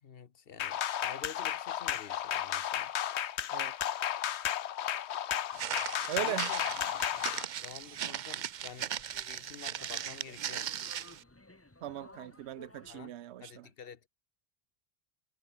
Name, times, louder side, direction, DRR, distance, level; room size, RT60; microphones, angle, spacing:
voice 1, 0.0-2.9 6.2-6.9 7.6-10.7 12.9-14.1, left 7 dB, 65° left, 1.2 m, -49 dB
sound 1, 0.6-7.5, left 10 dB, 85° left, 1.0 m, -33 dB
Walk footsteps, 5.5-11.2, right 10 dB, 55° right, 0.6 m, -38 dB
voice 2, 6.1-6.5 11.8-13.7, right 12 dB, 85° right, 0.9 m, -38 dB
sound 2, 6.7-13.1, left 2 dB, 15° left, 1.1 m, -57 dB
omnidirectional pair, 1.1 m